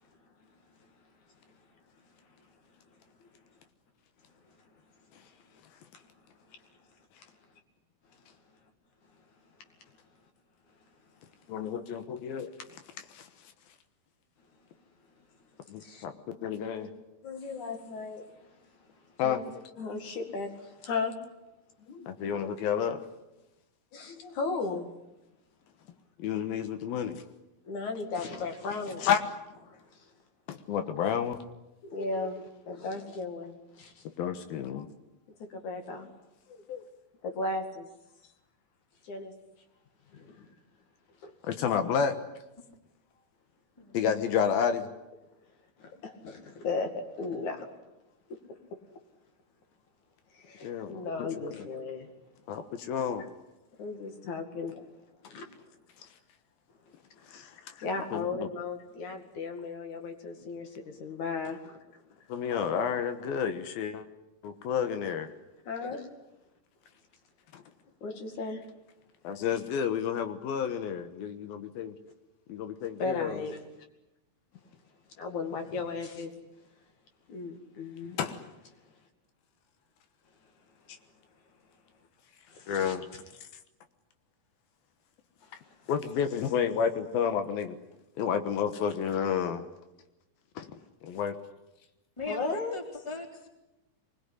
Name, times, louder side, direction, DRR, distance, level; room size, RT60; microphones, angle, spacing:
voice 1, 11.5-12.5 13.1-13.3 15.7-16.9 19.2-19.4 22.1-23.0 26.2-27.2 29.0-29.2 30.5-31.4 34.2-34.9 36.7-36.8 41.5-42.1 43.9-44.9 50.6-51.0 51.4-51.6 52.5-53.3 57.3-57.9 58.1-58.5 62.3-64.0 64.4-65.3 67.5-67.6 69.2-71.9 72.5-73.4 78.2-78.4 82.7-83.0 85.9-87.8 88.2-89.7 90.6-90.7 91.1-91.3, left 7 dB, 80° left, 8 dB, 3.1 m, -30 dB
voice 2, 17.2-18.4 19.2-19.4 19.8-21.2 21.8-22.0 23.9-24.9 27.7-29.1 29.7-29.8 31.8-34.0 35.5-36.1 36.5-36.6 37.2-37.9 39.0-39.3 40.1-40.5 41.2-41.3 45.8-46.9 47.2-47.7 50.3-52.1 53.8-54.8 55.3-55.5 57.8-61.8 65.7-66.1 68.0-68.6 73.0-73.6 75.2-76.3 77.3-78.2 82.5-83.0 92.3-92.8, left 4 dB, 55° left, 5 dB, 3.5 m, -36 dB
voice 3, 92.2-93.5, left 3 dB, 10° left, 2 dB, 3.1 m, -39 dB
24.5 x 20.5 x 10.0 m, 0.97 s
omnidirectional pair, 4.2 m